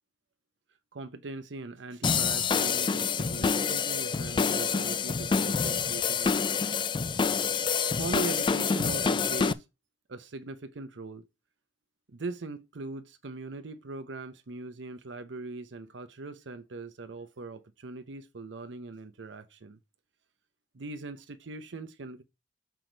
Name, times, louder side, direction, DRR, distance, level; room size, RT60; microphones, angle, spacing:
voice 1, 0.9-6.7 8.0-9.6 10.1-11.2 12.1-19.8 20.7-22.2, right 3 dB, 85° right, 0.7 m, -40 dB
sound 1, 2.0-9.5, left 5 dB, 25° left, 0.4 m, -27 dB
6.2 x 4.6 x 5.1 m
head